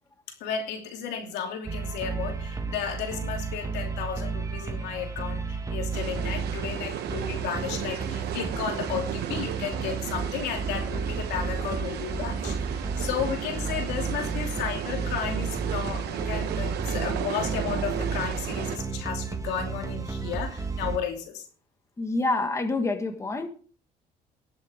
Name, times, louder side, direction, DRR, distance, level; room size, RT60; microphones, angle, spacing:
voice 1, 0.3-21.4, left 8 dB, 85° left, 3 dB, 2.8 m, -33 dB
sound 1, 1.7-21.0, right 4 dB, 20° right, 1.4 m, -32 dB
sound 2, 5.9-18.8, right 10 dB, 75° right, 1.1 m, -35 dB
voice 2, 22.0-23.5, left 2 dB, 15° left, 6 dB, 1.6 m, -27 dB
18.5 x 7.9 x 3.5 m, 0.40 s
cardioid pair, 110°, 17 cm